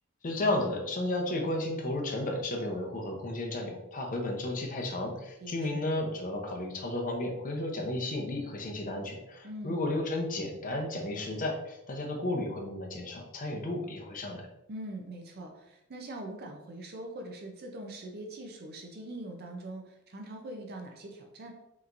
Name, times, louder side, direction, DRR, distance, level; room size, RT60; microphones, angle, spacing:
voice 1, 0.2-14.5, left 1 dB, 40° left, 2 dB, 0.7 m, -33 dB
voice 2, 5.4-5.9 9.4-9.9 14.7-21.5, right 1 dB, 45° right, 3 dB, 0.6 m, -42 dB
5.5 x 3.0 x 2.5 m, 0.89 s
head